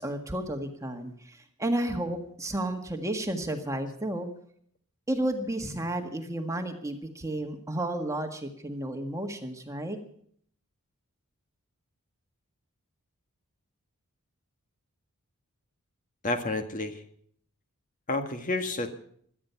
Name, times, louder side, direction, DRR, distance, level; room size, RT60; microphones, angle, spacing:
voice 1, 0.0-4.3 5.1-10.0, right 1 dB, 15° right, 4 dB, 1.7 m, -32 dB
voice 2, 16.2-17.0 18.1-18.9, left 2 dB, 35° left, 6 dB, 1.8 m, -30 dB
17.5 x 12.5 x 5.8 m, 0.62 s
head